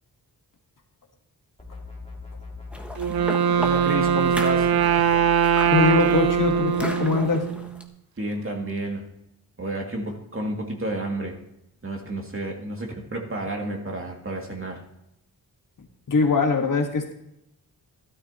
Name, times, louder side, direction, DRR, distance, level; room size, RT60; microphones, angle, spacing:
sound 1, 1.6-3.3 3.5-6.6, equal, 15° left, 2.3 m, -40 dB
sound 2, 2.7-7.8, equal, 5° right, 1.4 m, -36 dB
Wind instrument woodwind instrument, 3.0-7.8, right 8 dB, 75° right, 0.7 m, -22 dB
voice 1, 3.5-4.8 8.2-9.0 9.6-11.4 11.8-14.8, right 1 dB, 35° right, 1 dB, 2.3 m, -30 dB
voice 2, 5.7-7.5 16.1-17.1, left 4 dB, 55° left, 3 dB, 1.6 m, -22 dB
13.0 x 12.5 x 3.0 m, 0.81 s
cardioid pair, 85°, 38 cm